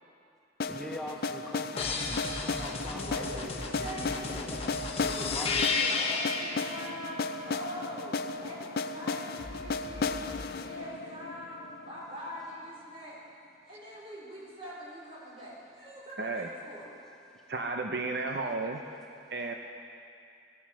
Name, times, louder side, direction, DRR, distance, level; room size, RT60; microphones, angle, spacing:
sound 1, 0.6-12.5, left 4 dB, 55° left, 0.5 m, -35 dB
voice 1, 0.7-3.3 5.3-5.5, equal, 5° left, 0 dB, 0.7 m, -42 dB
sound 2, 1.8-6.6 9.4-10.4, left 4 dB, 35° left, 1.3 m, -33 dB
voice 2, 3.1-4.6 5.0-10.3 10.5-13.2 13.6-16.9, equal, 35° right, -6 dB, 4.5 m, -43 dB
voice 3, 16.2-16.5 17.5-18.8 19.3-19.5, right 3 dB, 70° right, 3 dB, 0.8 m, -33 dB
18.0 x 12.5 x 6.2 m, 2.5 s
head